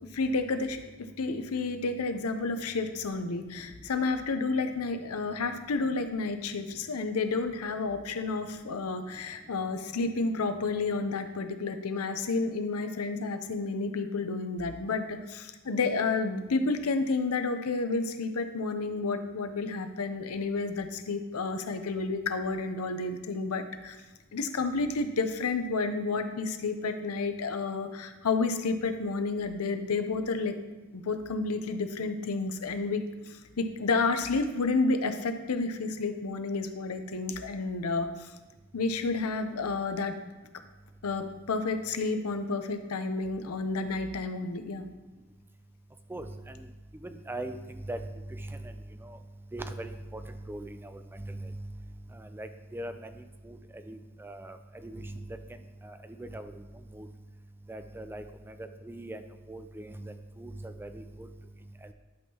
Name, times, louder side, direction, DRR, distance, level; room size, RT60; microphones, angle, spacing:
voice 1, 0.1-0.8 1.2-24.0 24.3-30.5 30.9-38.3 38.7-40.1 41.0-44.9, left 3 dB, 80° left, 8 dB, 0.7 m, -30 dB
voice 2, 46.1-46.7 46.9-48.0 48.3-48.7 49.0-49.2 49.5-51.6 52.1-53.6 53.9-55.3 55.8-56.6 56.9-57.1 57.7-61.3, right 1 dB, 10° right, 8 dB, 0.3 m, -41 dB
11.0 x 5.5 x 2.9 m, 1.2 s
head